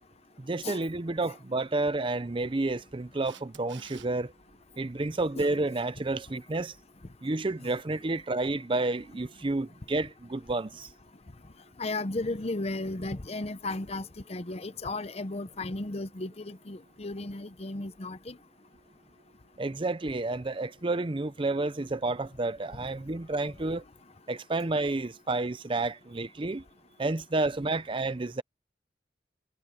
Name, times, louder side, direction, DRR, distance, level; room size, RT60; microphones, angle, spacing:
voice 1, 0.4-4.3 4.8-6.7 7.2-10.9 19.6-23.8 24.3-26.6 27.0-28.4, right 2 dB, 30° right, 0.6 m, -30 dB
Camera, 3.2-4.1 10.8-10.9, right 9 dB, 85° right, 1.4 m, -49 dB
voice 2, 11.8-18.4, left 2 dB, 35° left, 0.8 m, -35 dB
head